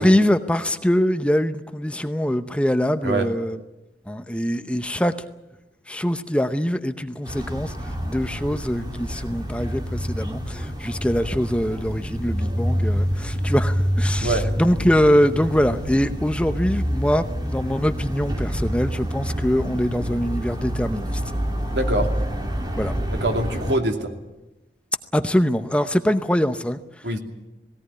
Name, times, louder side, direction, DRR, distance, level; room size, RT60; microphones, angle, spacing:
voice 1, 0.0-3.6 4.1-5.2 5.9-21.2 22.8-22.9 25.1-27.1, equal, 5° left, 9 dB, 0.7 m, -23 dB
sound 1, 7.2-23.8, equal, 25° right, 1.9 m, -27 dB
voice 2, 21.7-22.1 23.1-24.1 27.0-27.2, right 1 dB, 80° right, 4 dB, 2.6 m, -24 dB
19.0 x 17.5 x 9.7 m, 0.98 s
head